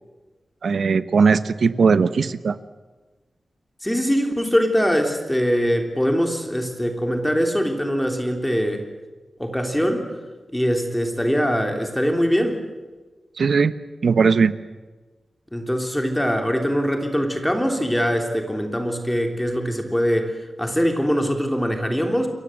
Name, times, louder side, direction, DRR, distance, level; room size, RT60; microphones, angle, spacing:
voice 1, 0.6-2.6 13.4-13.7 14.0-14.5, right 5 dB, 65° right, 13 dB, 1.1 m, -18 dB
voice 2, 3.8-8.8 9.4-10.1 10.5-12.6 15.5-22.3, equal, 5° left, 4 dB, 3.3 m, -22 dB
28.5 x 22.5 x 7.8 m, 1.3 s
wide cardioid pair, 170°, 0 cm